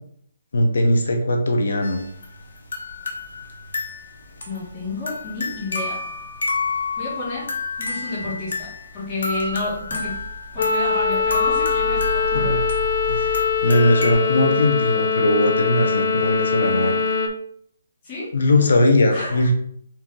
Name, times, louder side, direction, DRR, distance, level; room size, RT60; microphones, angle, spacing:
voice 1, 0.5-2.0 12.3-12.6 13.1-17.0 18.3-19.5, left 1 dB, 65° left, 4 dB, 1.0 m, -19 dB
sound 1, 1.8-14.1, left 3 dB, 85° left, 1.0 m, -29 dB
voice 2, 4.4-6.0 7.0-7.5 7.8-10.2 10.5-12.6 18.0-18.3 19.1-19.5, left 2 dB, 15° left, -11 dB, 1.4 m, -30 dB
sound 2, 10.6-17.3, left 5 dB, 45° left, 0.5 m, -22 dB
4.4 x 2.8 x 3.8 m, 0.67 s
hypercardioid pair, 175°, 0 cm